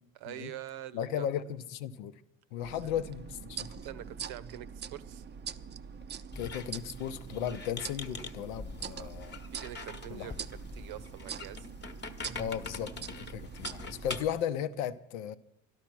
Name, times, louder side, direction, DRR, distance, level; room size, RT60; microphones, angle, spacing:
voice 1, 0.1-1.3 3.8-5.2 8.9-11.7, right 12 dB, 65° right, 0.8 m, -45 dB
voice 2, 0.9-2.2 2.5-3.9 6.4-9.4 10.1-10.3 12.4-15.4, left 9 dB, 80° left, 0.7 m, -36 dB
sound 1, 2.6-14.3, right 7 dB, 25° right, 0.5 m, -43 dB
Squeak, 6.3-14.4, left 3 dB, 25° left, 1.0 m, -44 dB
12.0 x 12.0 x 6.1 m
hypercardioid pair, 65°, 41 cm